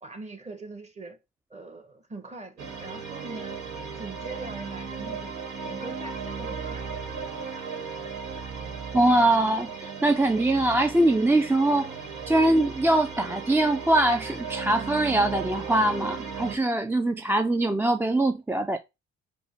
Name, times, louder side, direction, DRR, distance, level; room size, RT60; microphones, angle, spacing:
voice 1, 0.0-1.2 1.5-3.6 4.0-5.3 5.6-7.0, right 2 dB, 25° right, 1.2 m, -42 dB
sound 1, 2.6-16.6, right 5 dB, 85° right, 1.3 m, -36 dB
voice 2, 8.9-11.9 12.3-18.8, right 1 dB, 10° right, 0.3 m, -23 dB
5.2 x 2.2 x 4.4 m
cardioid pair, 85°, 29 cm